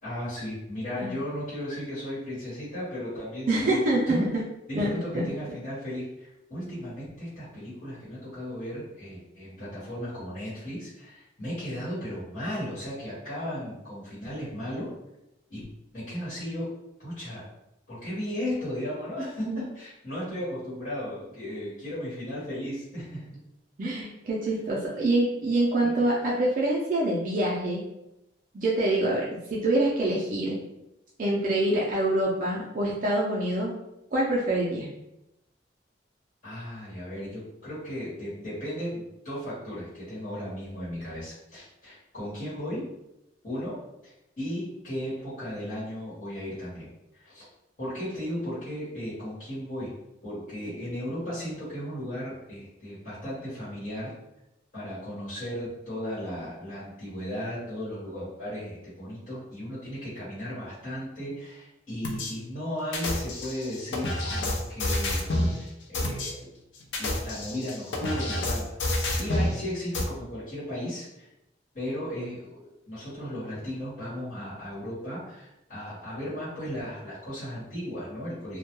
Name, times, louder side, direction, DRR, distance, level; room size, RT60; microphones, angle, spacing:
voice 1, 0.0-3.8 4.1-4.2 4.7-14.9 15.5-15.6 15.9-16.7 17.0-17.4 17.9-23.3 25.8-26.1 36.4-42.9 43.4-46.9 47.1-47.4 47.8-49.9 50.2-54.1 54.7-66.5 67.0-71.3 71.7-78.6, equal, 45° left, -11 dB, 1.1 m, -35 dB
voice 2, 3.5-4.3 4.7-5.2 19.5-19.6 23.8-27.8 28.5-30.6 31.2-33.8 34.1-34.9, right 1 dB, 45° right, -5 dB, 0.4 m, -25 dB
sound 1, 62.0-62.3 62.9-65.5 65.9-66.3 66.8-69.5 69.9-70.0, left 1 dB, 80° left, 0.5 m, -28 dB
2.2 x 2.1 x 2.9 m, 0.89 s
head